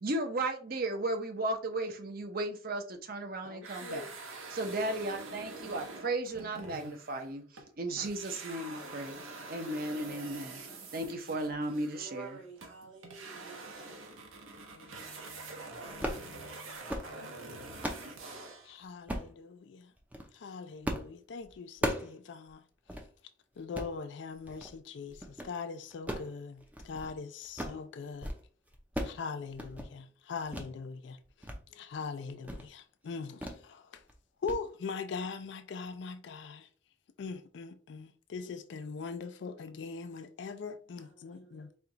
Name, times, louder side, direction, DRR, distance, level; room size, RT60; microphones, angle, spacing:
voice 1, 0.0-4.1 4.5-7.4 7.8-9.2 9.5-10.6 10.9-12.4, right 2 dB, 45° right, 0.7 m, -35 dB
voice 2, 3.4-4.1 14.7-17.9 18.6-19.9 20.3-22.6 23.6-28.3 29.0-34.0 34.4-36.7 37.2-41.7, left 5 dB, 60° left, 0.3 m, -42 dB
sound 1, 3.6-7.7 8.0-18.8, right 3 dB, 90° right, 1.0 m, -46 dB
voice 3, 11.9-13.7 41.0-41.8, right 4 dB, 70° right, 1.2 m, -50 dB
sound 2, 15.9-16.3 16.7-17.1 17.5-18.1 19.1-19.3 20.0-20.3 20.8-21.1 21.4-22.2 22.5-22.6 22.9-23.1 23.6-23.9 24.5-24.8 25.1-25.5 25.9-27.1 27.4-27.8 28.1-28.4 28.7-29.2 29.5-29.9 30.5-30.7 31.1-31.6 31.9-32.0 32.4-32.7 33.4-33.6 33.9-34.1 34.5-34.6, equal, 10° right, 0.5 m, -37 dB
4.4 x 2.3 x 3.8 m
head